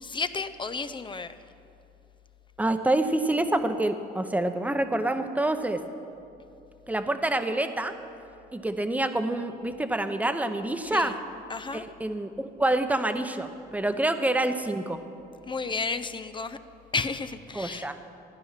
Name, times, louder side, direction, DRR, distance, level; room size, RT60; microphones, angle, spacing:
voice 1, 0.0-1.3 10.9-11.1 11.5-11.8 15.5-16.6 16.9-17.9, left 4 dB, 25° left, 11 dB, 0.6 m, -32 dB
voice 2, 2.6-5.8 6.9-7.9 8.5-11.1 11.7-15.0 17.5-18.0, right 1 dB, 10° right, 8 dB, 0.9 m, -27 dB
15.0 x 10.0 x 5.9 m, 2.7 s
cardioid pair, 90°, 18 cm